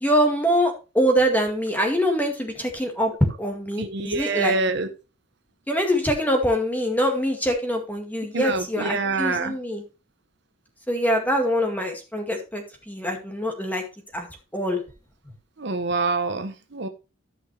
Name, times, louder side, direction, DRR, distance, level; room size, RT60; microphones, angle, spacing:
voice 1, 0.0-3.1 3.4-4.6 5.7-9.8 10.9-13.8 14.1-14.3 14.5-14.8, equal, 10° left, 3 dB, 2.0 m, -24 dB
voice 2, 3.8-4.9 8.3-9.6 15.6-16.9, right 3 dB, 55° right, 8 dB, 0.9 m, -26 dB
13.5 x 5.8 x 3.2 m, 0.30 s
head